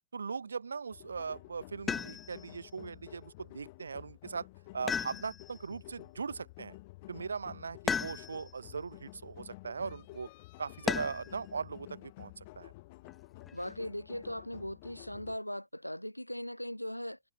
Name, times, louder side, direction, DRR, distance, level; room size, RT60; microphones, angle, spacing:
voice 1, 0.1-4.5 4.7-6.8 7.1-10.3 10.6-12.7, right 5 dB, 75° right, 1.2 m, -39 dB
sound 1, 0.9-15.4, left 21 dB, 50° left, 1.1 m, -52 dB
sound 2, 1.9-2.5 4.9-5.7 7.9-8.6 10.9-11.4 13.1-13.7, left 6 dB, 20° left, 0.5 m, -35 dB
voice 2, 13.5-17.2, equal, 90° left, 0.8 m, -39 dB
figure-of-eight pair, 90°, 0 cm